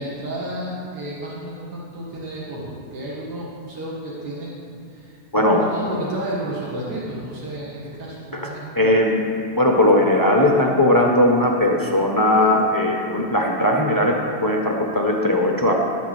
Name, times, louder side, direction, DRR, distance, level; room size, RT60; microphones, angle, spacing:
voice 1, 0.0-8.6, right 1 dB, 70° right, -7 dB, 2.3 m, -32 dB
voice 2, 5.3-5.7 8.3-8.5 8.7-9.2 9.5-14.2 14.4-15.7, left 1 dB, 20° left, 0 dB, 0.5 m, -18 dB
11.5 x 5.8 x 7.5 m, 2.4 s
omnidirectional pair, 1.8 m